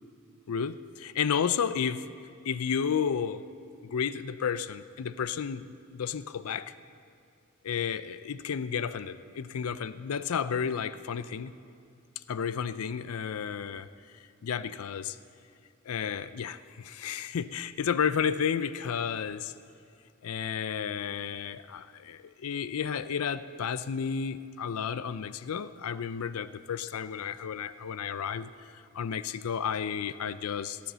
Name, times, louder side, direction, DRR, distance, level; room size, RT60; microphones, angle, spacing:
voice 1, 0.5-2.1 2.4-3.5 3.8-6.7 7.6-11.5 12.3-13.9 14.4-15.2 15.9-19.5 20.2-30.8, left 7 dB, 75° left, 15 dB, 0.5 m, -32 dB
17.5 x 10.5 x 6.8 m, 2.4 s
head